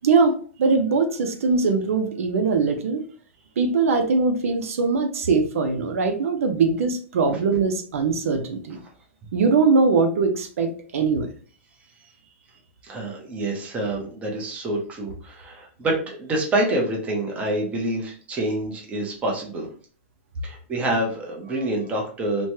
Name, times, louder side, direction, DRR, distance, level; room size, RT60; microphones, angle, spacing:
voice 1, 0.0-3.0 3.6-8.8 9.3-11.3, right 4 dB, 85° right, 5 dB, 0.6 m, -21 dB
voice 2, 12.8-19.7 20.4-22.5, right 1 dB, 15° right, 0 dB, 0.7 m, -27 dB
3.1 x 2.2 x 2.7 m, 0.43 s
supercardioid pair, 150°, 7 cm